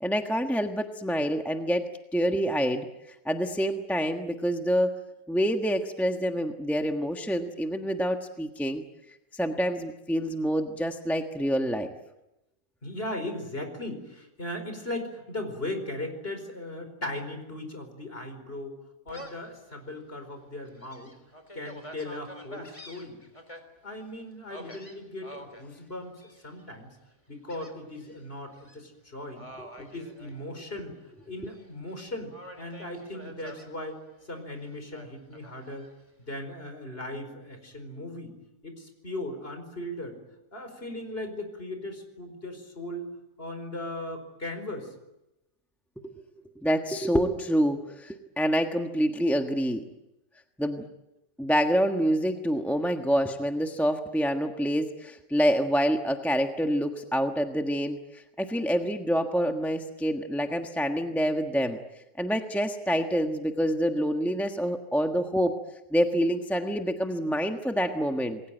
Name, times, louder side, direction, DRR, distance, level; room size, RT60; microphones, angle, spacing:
voice 1, 0.0-1.8 2.1-2.9 3.2-5.0 5.3-8.8 9.3-11.9 29.6-29.7 46.2-46.3 46.6-49.9 50.6-50.8 51.4-61.8 62.2-65.5 65.9-68.4, equal, ahead, 4 dB, 1.2 m, -27 dB
voice 2, 12.8-18.7 19.0-21.1 21.5-23.2 23.8-26.9 27.3-29.5 29.8-30.9 31.2-32.3 32.6-34.0 34.3-35.8 36.2-38.3 38.6-40.2 40.5-43.1 43.4-44.9, left 1 dB, 35° left, 7 dB, 5.1 m, -38 dB
Gull seagull, 19.1-19.5 20.0-20.1 20.6-23.6 24.5-25.6 26.2-26.6 27.5-28.2 28.5-28.8 29.3-30.9 31.2-31.9 32.3-33.7 34.9-35.9, equal, 20° left, 3.7 m, -46 dB
28.0 x 21.5 x 9.0 m, 0.94 s
omnidirectional pair, 1.7 m